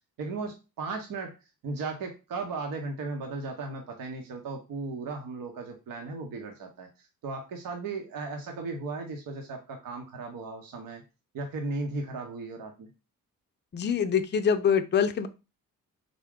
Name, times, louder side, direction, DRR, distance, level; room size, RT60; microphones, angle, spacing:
voice 1, 0.2-1.4 1.6-11.0 11.3-12.9, right 3 dB, 70° right, 2 dB, 0.8 m, -36 dB
voice 2, 13.7-15.3, left 7 dB, 30° left, 8 dB, 0.5 m, -24 dB
3.6 x 2.3 x 3.6 m, 0.28 s
supercardioid pair, 55°, 35 cm